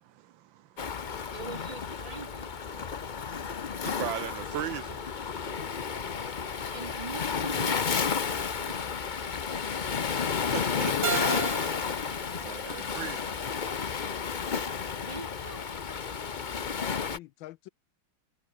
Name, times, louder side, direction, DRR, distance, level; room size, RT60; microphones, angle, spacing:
voice 1, 0.0-1.3 2.7-6.8 8.2-8.7 9.2-11.4 12.2-13.5, right 12 dB, 75° right, 1.6 m, -41 dB
Waves surf, 0.8-17.2, left 6 dB, 55° left, 0.5 m, -32 dB
voice 2, 1.3-2.5 6.7-7.8 8.6-8.8 14.5-15.9, right 3 dB, 20° right, 1.2 m, -43 dB
voice 3, 10.9-11.5 16.3-17.7, left 16 dB, 80° left, 1.3 m, -42 dB
Keyboard (musical), 11.0-13.9, right 6 dB, 55° right, 0.5 m, -37 dB
omnidirectional pair, 2.2 m